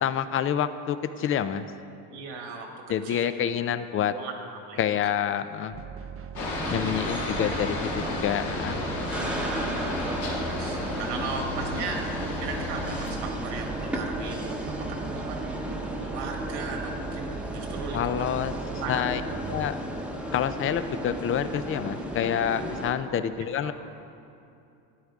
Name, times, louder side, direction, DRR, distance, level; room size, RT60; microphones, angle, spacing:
voice 1, 0.0-1.7 2.9-4.1 4.8-5.7 6.7-8.8 17.9-18.5 18.9-19.2 19.5-19.8 20.3-23.7, left 9 dB, 30° left, 12 dB, 0.4 m, -27 dB
voice 2, 2.1-3.7 4.1-5.0 6.6-7.1 9.0-12.1 12.4-18.3 18.6-18.9 23.0-23.2 23.6-23.7, right 4 dB, 80° right, 2 dB, 1.8 m, -38 dB
sound 1, 5.7-19.7, right 8 dB, 35° right, 0.5 m, -40 dB
Aircraft, 6.4-13.2, left 3 dB, 70° left, 2.0 m, -34 dB
sound 2, 6.4-22.9, equal, 5° right, 0.9 m, -34 dB
12.5 x 9.4 x 3.6 m, 2.7 s
supercardioid pair, 105°, 42 cm